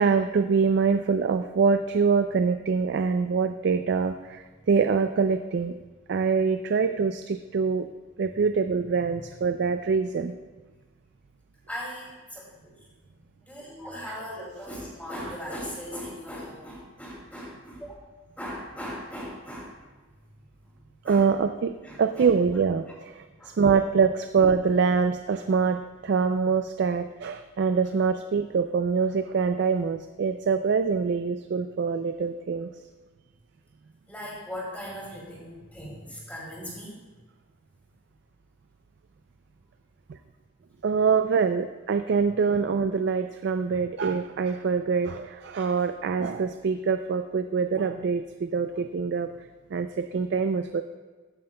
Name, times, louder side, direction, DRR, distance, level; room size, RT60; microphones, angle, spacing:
voice 1, 0.0-5.8 6.1-7.9 8.2-10.4 14.1-14.2 21.0-32.7 40.1-40.2 40.8-49.3 49.7-50.8, right 5 dB, 55° right, 8 dB, 0.3 m, -24 dB
voice 2, 11.7-17.9 18.4-19.7 21.0-21.3 21.8-22.3 23.4-23.6 34.1-36.9 43.7-43.8, equal, 10° left, -5 dB, 2.2 m, -39 dB
13.5 x 9.2 x 2.2 m, 1.3 s
head